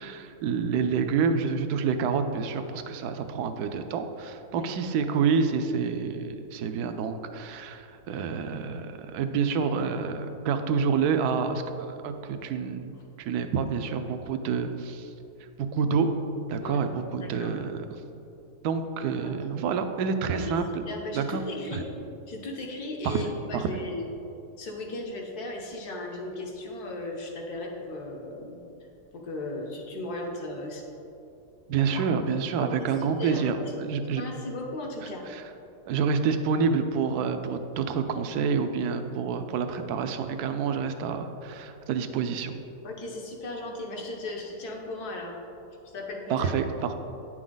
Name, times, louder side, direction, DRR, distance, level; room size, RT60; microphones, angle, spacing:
voice 1, 0.0-15.1 15.7-16.1 16.5-17.8 18.6-20.7 21.1-21.4 21.7-21.8 23.0-23.2 23.5-23.8 31.7-34.2 35.3-35.4 35.9-42.6 46.3-46.9, right 6 dB, 75° right, 8 dB, 1.1 m, -28 dB
voice 2, 17.2-17.6 19.2-19.7 20.3-21.9 22.3-24.1 24.6-30.8 31.8-32.0 32.6-33.7 34.1-35.2 42.8-45.4 45.9-46.5, left 2 dB, 70° left, 0 dB, 1.6 m, -37 dB
9.6 x 6.2 x 3.9 m, 2.8 s
omnidirectional pair, 1.7 m